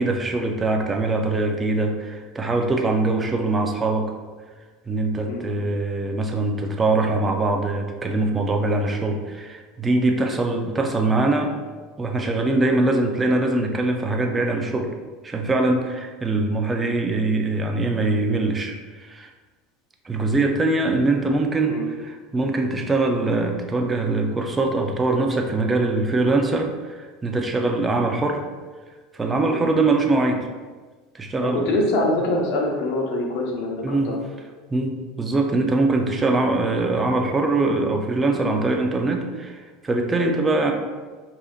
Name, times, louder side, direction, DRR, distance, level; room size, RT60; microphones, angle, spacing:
voice 1, 0.0-4.1 4.9-11.5 12.0-14.9 15.2-19.3 20.0-28.4 29.1-30.5 31.1-31.8 33.8-34.1 34.7-40.7, right 2 dB, 20° right, 3 dB, 0.5 m, -22 dB
voice 2, 31.4-34.2 38.3-38.4 40.2-40.3, left 1 dB, 65° left, 0 dB, 0.9 m, -25 dB
4.9 x 2.8 x 2.4 m, 1.4 s
supercardioid pair, 105°, 0 cm